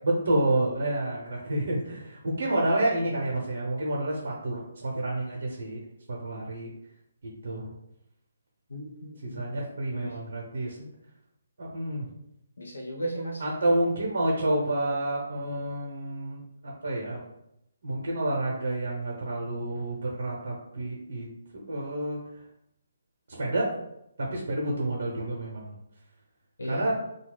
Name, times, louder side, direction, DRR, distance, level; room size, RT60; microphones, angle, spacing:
voice 1, 0.0-5.8 6.1-6.7 7.2-7.7 9.2-10.8 11.6-12.1 13.4-17.2 17.8-21.3 21.5-22.2 23.3-23.7 24.2-25.7 26.6-26.9, right 1 dB, 65° right, -2 dB, 0.7 m, -29 dB
voice 2, 8.7-9.6 10.0-10.2 12.6-13.4 26.6-26.8, right 1 dB, 70° left, -3 dB, 0.5 m, -35 dB
2.7 x 2.2 x 3.2 m, 0.81 s
figure-of-eight pair, 140°, 0 cm